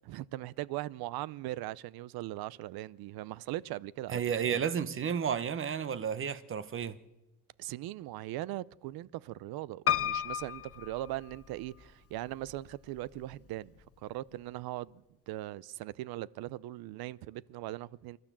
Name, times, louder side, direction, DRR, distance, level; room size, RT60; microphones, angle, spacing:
voice 1, 0.0-4.6 7.6-13.7 14.0-18.2, right 16 dB, 85° right, 0.6 m, -40 dB
voice 2, 4.1-7.0, right 7 dB, 35° right, 0.9 m, -32 dB
Piano, 9.9-11.8 12.5-13.2 13.5-13.6 13.8-13.9, left 10 dB, 40° left, 0.9 m, -33 dB
28.5 x 12.5 x 7.5 m
cardioid pair, 145°, 36 cm